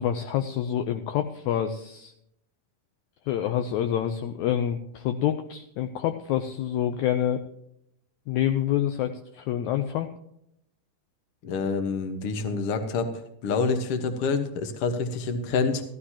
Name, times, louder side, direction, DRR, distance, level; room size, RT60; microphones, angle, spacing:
voice 1, 0.0-2.1 3.3-7.4 8.3-10.1, left 10 dB, 75° left, 7 dB, 1.8 m, -27 dB
voice 2, 11.4-13.1 13.4-15.8, left 4 dB, 55° left, 7 dB, 1.8 m, -27 dB
14.5 x 14.5 x 2.9 m, 0.76 s
omnidirectional pair, 3.9 m